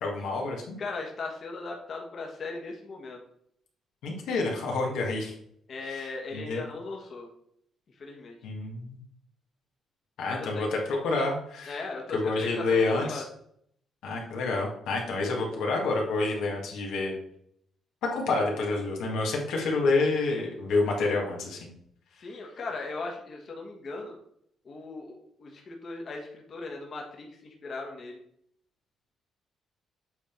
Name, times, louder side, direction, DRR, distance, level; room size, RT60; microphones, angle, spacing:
voice 1, 0.0-0.8 4.0-5.3 5.8-6.6 8.4-9.0 10.2-11.8 12.1-13.2 14.0-17.2 18.0-21.7, left 3 dB, 85° left, -1 dB, 1.7 m, -28 dB
voice 2, 0.8-3.2 5.7-7.3 7.9-8.4 10.3-10.7 11.7-13.2 22.1-24.2 24.6-28.2, left 3 dB, 50° left, 0 dB, 1.4 m, -38 dB
8.0 x 3.5 x 4.5 m, 0.70 s
cardioid pair, 90°, 0 cm